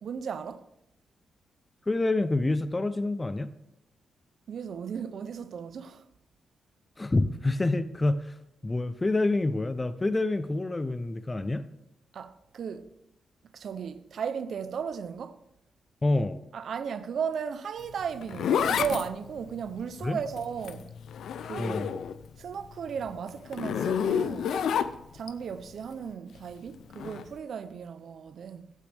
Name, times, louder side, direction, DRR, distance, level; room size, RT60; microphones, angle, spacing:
voice 1, 0.0-0.7 4.5-6.1 12.1-12.9 13.5-15.4 16.5-20.9 21.4-21.8 22.4-24.6 25.1-28.7, right 7 dB, 60° right, 0.5 m, -35 dB
voice 2, 1.9-3.5 7.0-8.3 8.6-11.6 16.0-16.4 20.0-20.2 21.6-21.9, left 2 dB, 15° left, 0.4 m, -27 dB
Zipper (clothing), 17.8-22.3 22.6-25.3 26.9-27.2, left 8 dB, 80° left, 0.5 m, -30 dB
14.5 x 8.3 x 3.4 m
wide cardioid pair, 145°, 0 cm